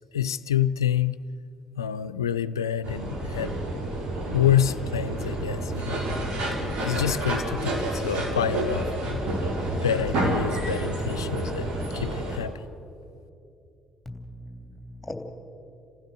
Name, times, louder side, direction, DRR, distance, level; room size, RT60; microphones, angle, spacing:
voice 1, 0.1-1.2 1.8-3.6 4.3-6.0 6.6-8.9 9.8-12.6, left 9 dB, 80° left, 16 dB, 0.4 m, -27 dB
sound 1, 2.8-12.4, right 1 dB, 60° right, 4.0 m, -29 dB
voice 2, 14.0-15.1, left 1 dB, 5° left, 4 dB, 3.0 m, -40 dB
28.0 x 15.5 x 6.9 m, 2.7 s
figure-of-eight pair, 45°, 2 cm